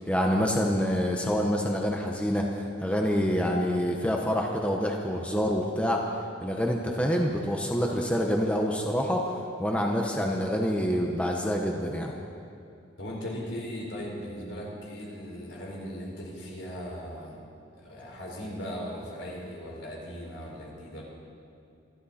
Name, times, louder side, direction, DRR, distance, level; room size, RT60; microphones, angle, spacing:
voice 1, 0.1-2.5 2.8-6.0 6.4-9.2 9.6-12.1, equal, 5° left, 0 dB, 1.1 m, -26 dB
voice 2, 13.0-17.4 17.7-21.0, equal, 75° left, -2 dB, 4.4 m, -38 dB
26.0 x 12.5 x 4.3 m, 2.6 s
head